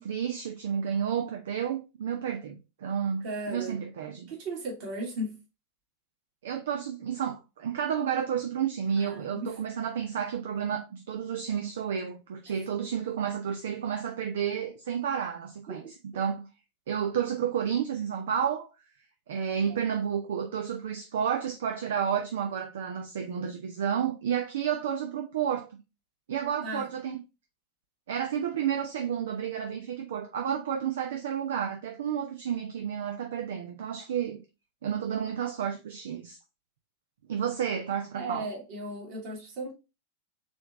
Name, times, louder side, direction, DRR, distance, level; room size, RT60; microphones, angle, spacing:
voice 1, 0.0-4.3 6.4-15.8 16.1-16.5 16.9-18.7 19.3-25.7 26.3-27.2 28.1-34.4 34.8-36.4 37.3-38.5, right 8 dB, 60° right, 0.6 m, -31 dB
voice 2, 3.2-3.8 4.3-5.4 9.0-9.6 15.7-15.9 19.3-19.8 26.6-26.9 38.1-39.7, right 1 dB, 45° right, 2.0 m, -36 dB
4.2 x 3.2 x 3.5 m
figure-of-eight pair, 90°, 0 cm